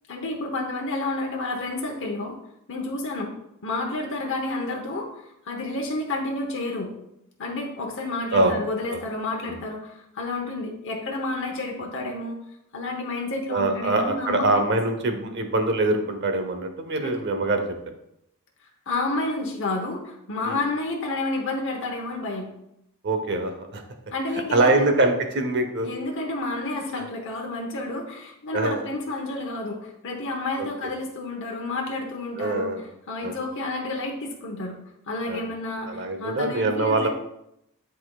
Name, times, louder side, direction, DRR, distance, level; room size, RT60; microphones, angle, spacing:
voice 1, 0.1-2.4 2.7-3.3 3.6-5.1 5.4-6.9 7.4-12.4 12.7-14.5 17.0-17.2 18.9-22.5 24.1-25.1 25.8-34.8 35.1-37.1, left 2 dB, 60° left, 0 dB, 0.9 m, -30 dB
voice 2, 13.5-17.8 20.4-20.6 23.0-23.8 24.5-25.9 28.5-28.8 30.6-30.9 32.4-32.8 33.2-33.4 35.3-35.4 35.9-37.1, right 2 dB, 55° right, 6 dB, 0.8 m, -24 dB
10.0 x 4.2 x 2.3 m, 0.82 s
head